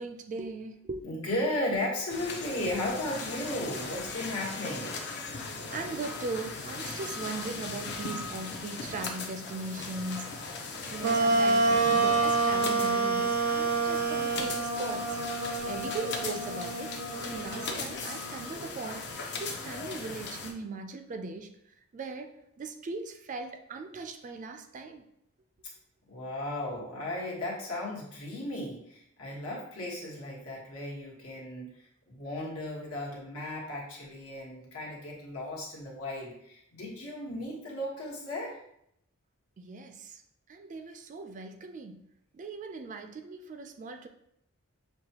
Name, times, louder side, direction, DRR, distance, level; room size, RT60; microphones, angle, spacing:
voice 1, 0.0-1.0 5.3-10.4 10.9-15.2 15.7-19.1 19.4-21.5 21.9-22.3 22.6-25.0 39.6-40.2 40.5-42.0 42.3-44.1, right 3 dB, 35° right, 7 dB, 0.3 m, -39 dB
voice 2, 1.0-5.0 26.1-38.6, left 1 dB, 70° left, -3 dB, 1.3 m, -35 dB
sound 1, 2.1-20.5, left 4 dB, 50° left, 0.6 m, -38 dB
Wind instrument woodwind instrument, 11.0-18.4, right 3 dB, 85° right, 0.6 m, -28 dB
6.4 x 2.2 x 2.8 m, 0.75 s
head